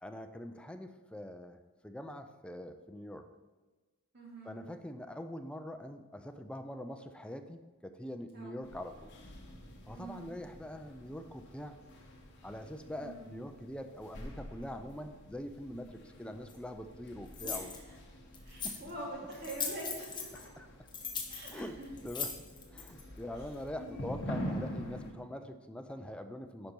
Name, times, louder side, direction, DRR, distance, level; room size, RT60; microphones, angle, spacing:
voice 1, 0.0-3.3 4.4-9.1 9.9-11.8 12.4-17.7 18.6-18.8 20.6-20.7 21.5-21.8 22.0-22.3 22.7-26.7, left 1 dB, 5° left, 6 dB, 0.4 m, -44 dB
voice 2, 4.1-4.6 8.3-8.6 9.9-10.3 13.0-13.3 17.4-18.0 18.4-20.3 21.3-21.9 23.3-23.5 23.8-24.1, right 1 dB, 50° right, -4 dB, 2.5 m, -45 dB
sound 1, 8.6-25.1, equal, 55° left, 1.2 m, -46 dB
sound 2, 16.5-16.6 17.3-17.8 18.3-18.9 19.3-20.5 20.9-23.0, left 6 dB, 20° left, 1.0 m, -39 dB
9.5 x 5.3 x 4.5 m, 1.3 s
head